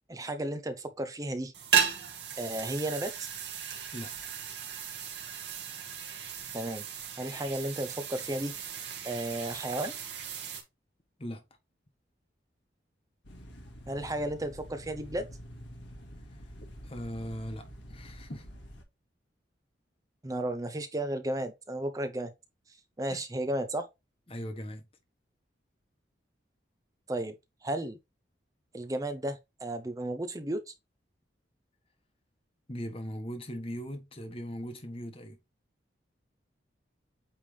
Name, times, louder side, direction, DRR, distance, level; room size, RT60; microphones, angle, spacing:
voice 1, 0.1-1.5 2.4-3.3 6.5-6.8 7.2-8.5 9.0-9.9 13.9-15.3 20.2-22.3 23.0-23.9 27.1-27.3 27.6-28.0 28.7-30.7, right 1 dB, 20° right, 0.6 m, -33 dB
sound 1, 1.5-10.6, right 8 dB, 65° right, 1.8 m, -35 dB
sound 2, 13.2-18.8, equal, 80° left, 1.8 m, -47 dB
voice 2, 16.8-18.5 23.1-23.2 24.3-24.8 32.7-35.4, equal, 30° left, 1.2 m, -39 dB
8.6 x 3.4 x 3.3 m
head